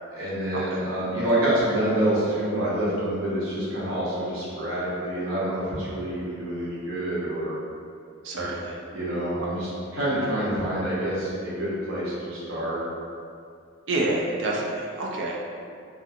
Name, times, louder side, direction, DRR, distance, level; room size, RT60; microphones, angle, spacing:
voice 1, 0.1-7.6 8.3-8.5 8.9-12.8, right 1 dB, 80° right, -9 dB, 1.0 m, -27 dB
voice 2, 8.2-8.8 13.9-15.4, right 2 dB, 60° right, -2 dB, 0.4 m, -28 dB
2.6 x 2.6 x 2.5 m, 2.4 s
head